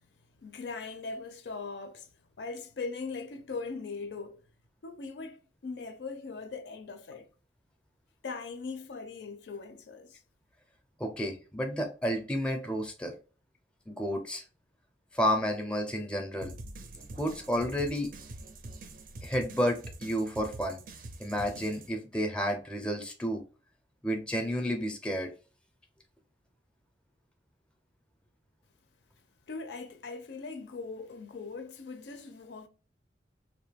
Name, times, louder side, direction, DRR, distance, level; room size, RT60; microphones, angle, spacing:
voice 1, 0.4-2.1 2.4-4.4 4.8-7.3 8.2-10.2 29.5-32.7, left 4 dB, 75° left, 0.4 m, -40 dB
voice 2, 11.0-13.1 13.9-14.4 15.1-16.5 17.2-18.1 19.2-20.8 21.2-23.4 24.0-25.3, equal, 5° left, 0.5 m, -31 dB
sound 1, 16.4-21.9, right 2 dB, 50° right, 0.4 m, -45 dB
2.6 x 2.2 x 3.3 m
head